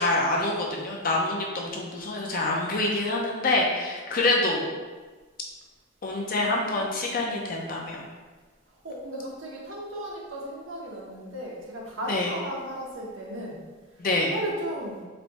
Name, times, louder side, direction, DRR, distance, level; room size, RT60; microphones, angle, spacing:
voice 1, 0.0-4.6 6.0-8.0 12.1-12.3 14.0-14.3, left 2 dB, 40° left, -1 dB, 0.6 m, -26 dB
voice 2, 6.3-7.6 8.8-13.6 14.3-15.0, equal, 70° right, -3 dB, 0.9 m, -36 dB
3.2 x 2.7 x 4.1 m, 1.3 s
head